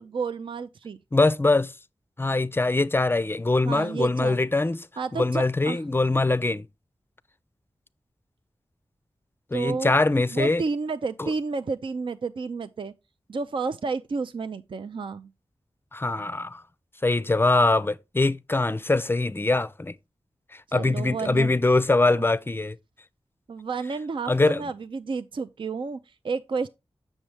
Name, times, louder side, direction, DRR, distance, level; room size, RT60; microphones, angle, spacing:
voice 1, 0.0-1.0 3.6-4.4 5.0-5.8 9.5-9.9 10.3-12.9 13.3-15.3 20.7-21.5 22.1-22.2 23.5-26.7, right 4 dB, 55° right, 0.4 m, -31 dB
voice 2, 1.1-1.7 2.2-4.9 5.1-6.7 9.5-10.6 11.2-11.3 15.9-16.6 17.0-19.9 20.7-22.8 24.3-24.6, left 2 dB, 25° left, 0.4 m, -23 dB
7.3 x 6.3 x 3.3 m
cardioid pair, 45°, 10 cm